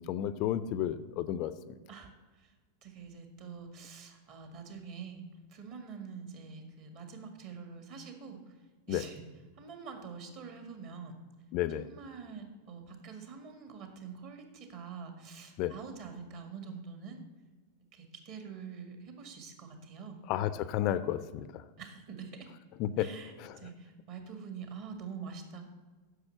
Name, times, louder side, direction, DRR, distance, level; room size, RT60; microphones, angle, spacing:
voice 1, 0.0-1.8 8.9-9.0 11.5-11.9 15.6-15.7 20.3-21.6 22.8-23.1 23.4-23.6, left 11 dB, 40° left, 14 dB, 0.4 m, -32 dB
voice 2, 2.8-5.2 5.5-8.4 8.9-9.2 9.6-11.1 11.8-17.2 17.9-20.2 21.8-22.5 23.0-25.6, right 6 dB, 45° right, 5 dB, 1.9 m, -45 dB
9.5 x 6.4 x 6.8 m, 1.3 s
figure-of-eight pair, 90°, 0 cm